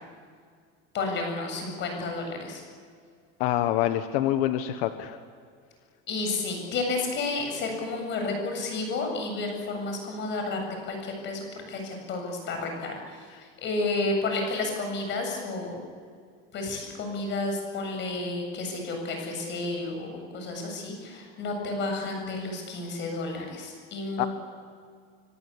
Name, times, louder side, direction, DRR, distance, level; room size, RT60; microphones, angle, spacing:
voice 1, 0.9-2.6 6.1-15.8 16.5-24.3, left 3 dB, 35° left, 3 dB, 7.7 m, -31 dB
voice 2, 3.4-5.2 24.2-24.3, left 13 dB, 85° left, 9 dB, 1.4 m, -26 dB
25.0 x 24.5 x 8.7 m, 2.1 s
cardioid pair, 170°, 30 cm